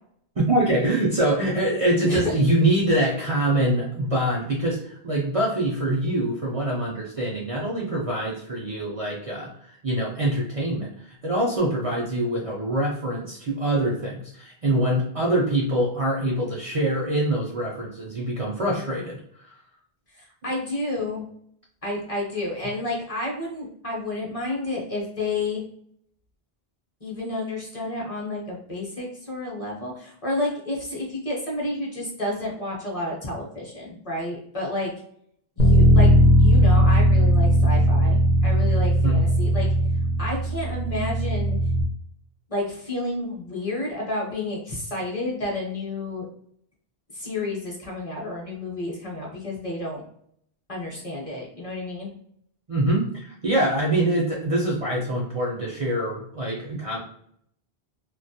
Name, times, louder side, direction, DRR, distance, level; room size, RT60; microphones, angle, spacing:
voice 1, 0.4-19.6 39.0-39.2 52.7-57.0, right 1 dB, 50° right, -3 dB, 0.4 m, -24 dB
voice 2, 2.0-2.3 20.1-21.3 21.8-25.6 27.0-34.9 35.6-39.7 40.2-41.6 42.5-46.3 47.1-50.0 50.7-52.1, left 2 dB, 40° left, -3 dB, 0.7 m, -30 dB
Bass guitar, 35.6-41.8, equal, 85° left, 0.9 m, -18 dB
2.2 x 2.1 x 2.6 m, 0.65 s
omnidirectional pair, 1.0 m